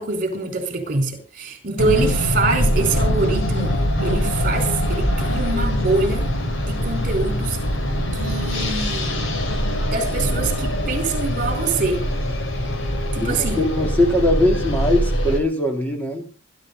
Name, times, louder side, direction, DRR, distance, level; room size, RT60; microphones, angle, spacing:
voice 1, 0.0-3.7 4.0-6.3 6.6-7.6 8.1-9.1 9.8-12.1 13.1-13.6, right 3 dB, 40° right, 4.9 m, -24 dB
sound 1, 1.8-15.4, equal, 65° left, 4.0 m, -23 dB
voice 2, 13.2-16.3, left 1 dB, 10° left, 3.4 m, -21 dB
20.5 x 11.5 x 4.2 m
head